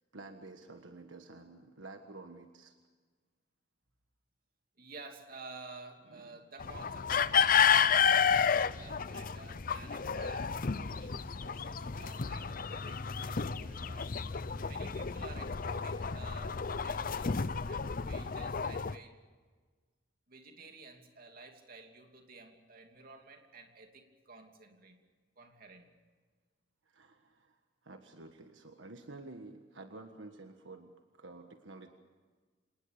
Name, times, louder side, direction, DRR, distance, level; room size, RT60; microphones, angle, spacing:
voice 1, 0.0-2.8 6.1-6.4 26.8-31.9, right 2 dB, 80° right, 6 dB, 1.5 m, -50 dB
voice 2, 4.8-14.2 14.6-19.2 20.3-25.0 25.4-26.0, right 3 dB, 50° right, 4 dB, 2.9 m, -52 dB
sound 1, 6.6-19.0, left 7 dB, 45° left, 0.6 m, -31 dB
27.0 x 19.5 x 6.7 m, 1.4 s
head